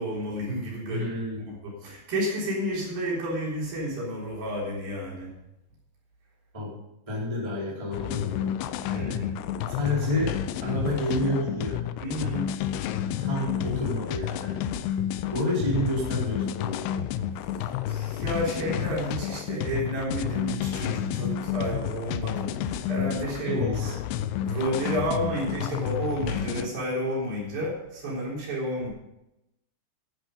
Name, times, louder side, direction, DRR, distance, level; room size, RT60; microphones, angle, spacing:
voice 1, 0.0-1.1 1.4-5.3 8.9-9.4 12.0-12.5 17.9-24.0 24.4-28.9, equal, 55° right, -4 dB, 5.3 m, -31 dB
voice 2, 0.9-1.4 6.5-6.8 7.1-8.5 8.9-9.2 9.7-11.8 12.2-12.4 13.2-14.6 15.3-17.0 23.4-23.9, left 1 dB, 10° right, -5 dB, 3.5 m, -30 dB
sound 1, 7.9-26.7, left 10 dB, 85° left, 2.4 m, -30 dB
12.0 x 11.0 x 5.3 m, 0.89 s
omnidirectional pair, 5.2 m